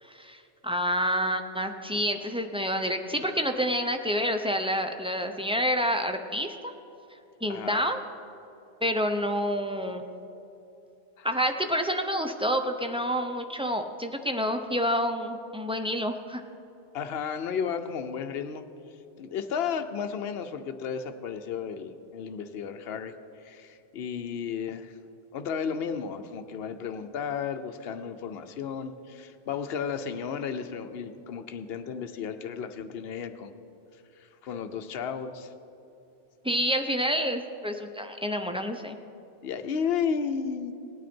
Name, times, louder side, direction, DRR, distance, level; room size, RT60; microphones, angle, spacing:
voice 1, 0.0-6.7 7.4-8.0 8.8-10.0 11.2-16.4 36.4-39.0, equal, 10° right, 5 dB, 0.4 m, -28 dB
voice 2, 7.5-7.8 11.2-11.4 16.9-18.6 19.2-23.1 23.4-24.9 25.3-33.5 34.4-35.5 39.4-40.7, left 7 dB, 65° left, 8 dB, 0.9 m, -33 dB
18.5 x 9.2 x 4.3 m, 2.9 s
omnidirectional pair, 1.2 m